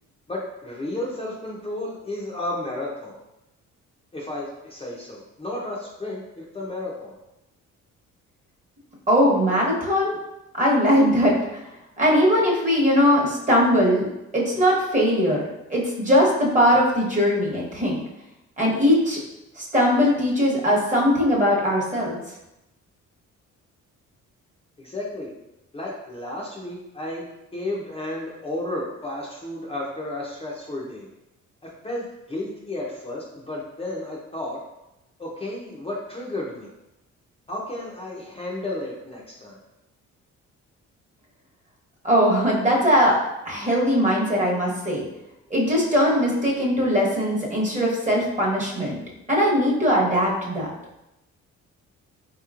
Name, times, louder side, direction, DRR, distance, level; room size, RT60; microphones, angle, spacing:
voice 1, 0.3-3.2 4.1-7.1 24.8-25.3 25.7-27.2 27.5-31.1 31.6-34.6 35.2-36.7 37.5-39.6, left 1 dB, 20° left, -4 dB, 0.7 m, -32 dB
voice 2, 9.1-10.2 10.6-11.6 12.0-14.0 14.3-15.4 15.7-18.0 18.6-19.2 19.6-22.2 42.0-43.2 43.4-45.0 45.5-49.0 49.3-50.7, equal, 25° right, -3 dB, 1.1 m, -20 dB
4.0 x 3.0 x 2.4 m, 0.93 s
cardioid pair, 90°, 30 cm